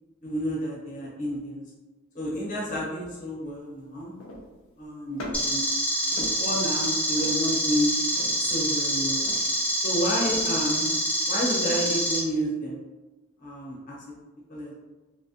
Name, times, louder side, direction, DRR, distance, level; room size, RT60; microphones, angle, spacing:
voice 1, 0.2-1.6 2.1-4.1 4.8-5.6 6.1-7.9 8.4-9.2 9.8-10.9 11.2-12.8 13.4-14.0 14.5-14.8, equal, 40° left, -6 dB, 0.7 m, -30 dB
sound 1, 3.5-3.6 4.2-4.7 5.1-5.7 6.1-6.8 7.1-7.6 8.2-8.5 9.2-9.7 10.3-10.7, left 1 dB, 90° left, 0.5 m, -40 dB
sound 2, 5.3-12.2, equal, 5° left, 0.4 m, -26 dB
2.3 x 2.1 x 2.7 m, 1.2 s
head